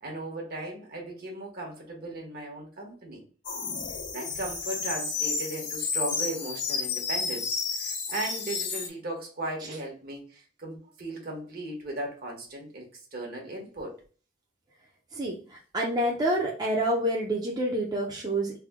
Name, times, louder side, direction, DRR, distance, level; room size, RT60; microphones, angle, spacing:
voice 1, 0.0-3.2 4.1-14.0, right 1 dB, 55° right, 0 dB, 1.2 m, -37 dB
sound 1, 3.4-8.9, left 5 dB, 90° left, 0.7 m, -31 dB
voice 2, 15.1-18.5, right 1 dB, 20° right, -3 dB, 0.6 m, -28 dB
3.4 x 2.2 x 3.5 m, 0.38 s
head